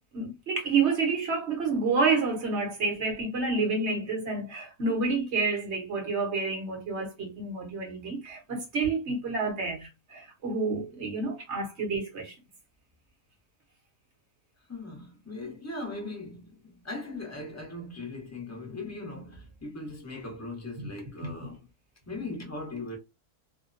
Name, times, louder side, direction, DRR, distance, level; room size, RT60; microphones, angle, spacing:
voice 1, 0.1-12.3 21.2-21.3, right 4 dB, 50° right, 0.9 m, -29 dB
voice 2, 14.7-21.6 22.1-23.0, left 2 dB, 15° left, 0.6 m, -39 dB
2.8 x 2.1 x 2.5 m
omnidirectional pair, 1.8 m